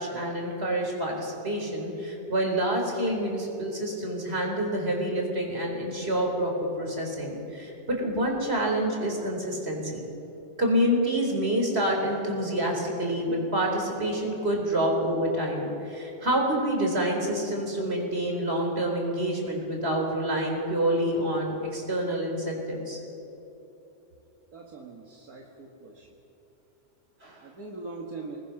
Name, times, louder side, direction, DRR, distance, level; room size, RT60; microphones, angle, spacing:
voice 1, 0.0-10.1 10.6-23.0 27.2-27.4, right 1 dB, 40° right, 0 dB, 4.3 m, -27 dB
voice 2, 24.5-26.1 27.4-28.4, right 3 dB, 70° right, -1 dB, 2.1 m, -41 dB
27.0 x 19.5 x 5.9 m, 3.0 s
omnidirectional pair, 1.6 m